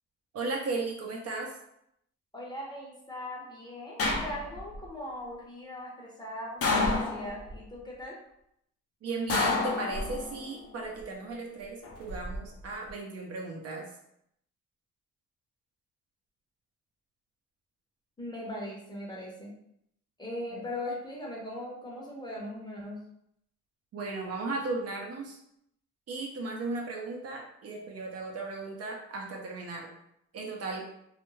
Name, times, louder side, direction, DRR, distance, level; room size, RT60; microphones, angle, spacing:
voice 1, 0.3-1.6 9.0-13.9 20.5-20.6 23.9-25.4 26.1-29.9 30.3-30.9, right 3 dB, 55° right, 0 dB, 0.7 m, -36 dB
voice 2, 2.3-8.2 18.2-19.5 20.2-23.0, left 1 dB, 15° left, -3 dB, 0.7 m, -39 dB
sound 1, 4.0-4.8 6.6-7.6 9.3-10.4 11.8-12.4, left 3 dB, 50° left, 0.6 m, -29 dB
2.4 x 2.1 x 3.1 m, 0.76 s
cardioid pair, 90°, 30 cm